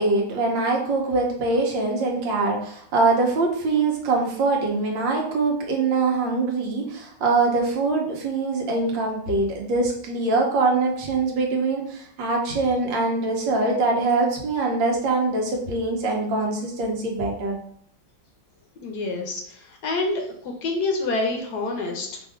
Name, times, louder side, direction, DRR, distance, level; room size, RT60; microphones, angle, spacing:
voice 1, 0.0-17.6, right 3 dB, 80° right, 0 dB, 1.7 m, -23 dB
voice 2, 18.8-22.2, left 3 dB, 65° left, 2 dB, 1.3 m, -27 dB
5.5 x 2.5 x 3.6 m, 0.64 s
omnidirectional pair, 2.0 m